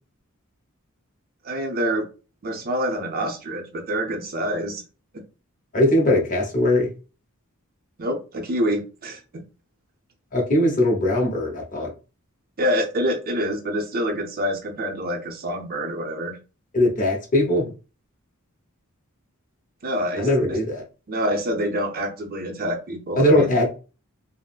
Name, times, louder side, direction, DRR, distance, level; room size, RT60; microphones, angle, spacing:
voice 1, 1.4-2.1 2.4-4.8 8.0-9.4 12.6-16.4 19.8-20.3 21.1-23.6, equal, 45° right, 4 dB, 0.6 m, -26 dB
voice 2, 5.7-6.9 10.3-11.9 16.7-17.7 20.2-20.8 23.2-23.8, left 1 dB, 35° left, 0 dB, 0.9 m, -20 dB
3.7 x 2.1 x 2.4 m, 0.33 s
head